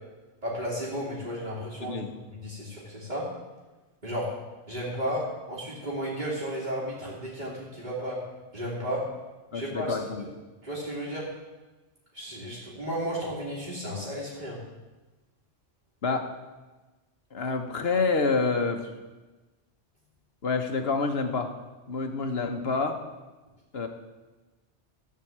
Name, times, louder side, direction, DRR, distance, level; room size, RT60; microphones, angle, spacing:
voice 1, 0.4-2.0 2.3-3.3 4.0-4.3 4.7-8.2 8.5-9.0 9.5-10.3 10.6-11.3 12.1-14.6, equal, 40° right, -8 dB, 2.9 m, -33 dB
voice 2, 9.5-10.2 16.0-16.3 17.3-18.9 20.4-21.5 21.9-23.0 23.7-23.9, left 4 dB, 60° left, 5 dB, 1.4 m, -27 dB
14.0 x 4.8 x 8.7 m, 1.2 s
omnidirectional pair, 1.2 m